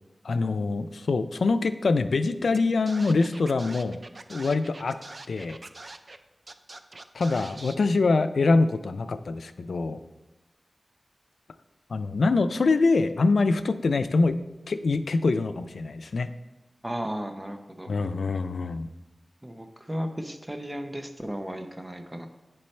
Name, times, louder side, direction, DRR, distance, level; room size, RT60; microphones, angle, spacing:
voice 1, 0.2-4.0 4.3-5.0 5.3-5.6 7.1-10.0 11.9-14.4 14.7-16.3 17.9-18.9, left 3 dB, 90° left, 11 dB, 0.3 m, -24 dB
Scratching (performance technique), 2.5-2.6 2.9-6.2 6.5-7.7, right 2 dB, 50° right, 0.4 m, -43 dB
voice 2, 16.8-17.9 19.4-22.3, equal, 15° right, 5 dB, 0.7 m, -35 dB
10.0 x 4.3 x 3.2 m, 1.0 s
wide cardioid pair, 70°, 0 cm